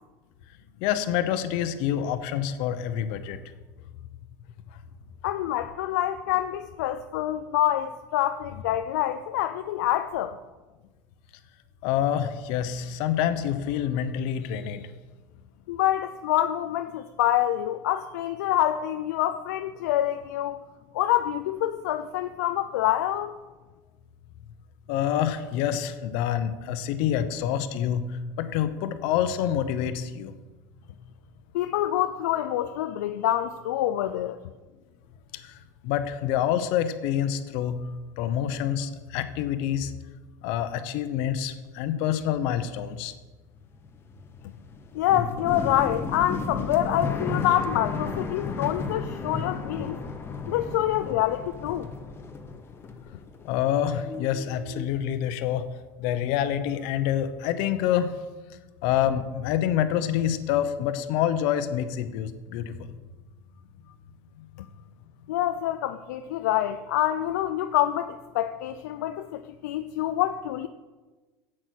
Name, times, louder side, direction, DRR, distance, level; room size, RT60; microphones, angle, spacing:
voice 1, 0.8-3.4 11.8-14.8 24.9-30.3 35.3-35.6 35.8-37.9 38.2-39.9 40.4-43.1 53.4-55.6 56.0-58.1 58.8-62.9 64.4-64.7, left 10 dB, 70° left, 0.9 m, -27 dB
voice 2, 5.2-10.4 15.7-20.6 20.9-23.4 31.5-34.4 44.9-50.0 50.5-51.9 65.3-70.7, left 12 dB, 85° left, 0.4 m, -26 dB
sound 1, 43.6-53.8 54.0-54.9, left 4 dB, 25° left, 1.1 m, -34 dB
8.4 x 7.6 x 6.5 m
supercardioid pair, 100°, 9 cm